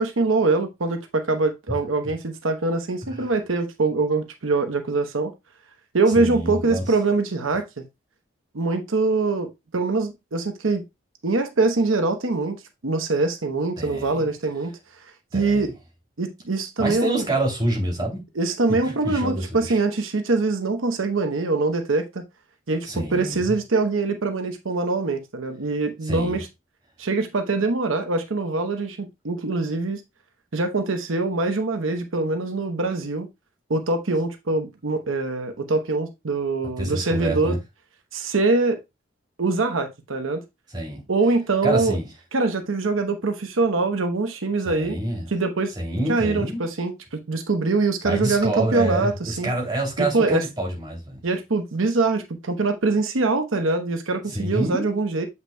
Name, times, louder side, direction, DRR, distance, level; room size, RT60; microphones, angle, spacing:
voice 1, 0.0-5.3 5.9-7.8 8.5-10.8 11.2-14.8 15.3-15.7 16.2-17.3 18.4-22.2 22.7-26.5 27.0-30.0 30.5-33.3 33.7-37.6 38.1-38.8 39.4-40.4 41.1-42.0 42.3-45.0 45.3-45.7 46.1-49.5 50.0-50.4 51.2-55.3, right 3 dB, 90° right, 0.9 m, -23 dB
voice 2, 6.1-6.8 13.8-14.3 15.3-15.7 16.8-18.2 18.8-19.8 22.8-23.5 26.0-26.4 36.8-37.6 40.7-41.0 41.6-42.1 44.6-45.3 45.8-46.6 48.0-51.2 54.3-54.9, right 1 dB, 20° right, 2.7 m, -27 dB
7.8 x 5.8 x 2.2 m
head